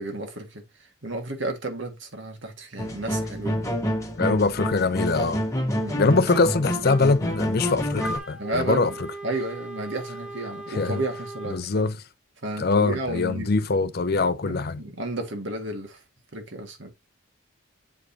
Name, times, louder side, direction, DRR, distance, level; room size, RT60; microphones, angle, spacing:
voice 1, 0.0-3.7 5.8-6.2 8.4-9.0 9.2-11.9 12.4-13.5 14.4-16.0 16.3-16.9, right 2 dB, 60° right, 1.7 m, -32 dB
sound 1, 2.8-8.2, equal, 15° left, 1.3 m, -28 dB
voice 2, 4.2-5.4 6.0-8.9 10.8-11.0 11.5-11.9 12.6-14.8, left 3 dB, 45° left, 0.5 m, -23 dB
Wind instrument woodwind instrument, 8.0-11.6, right 2 dB, 5° right, 1.4 m, -37 dB
8.0 x 4.9 x 2.7 m
head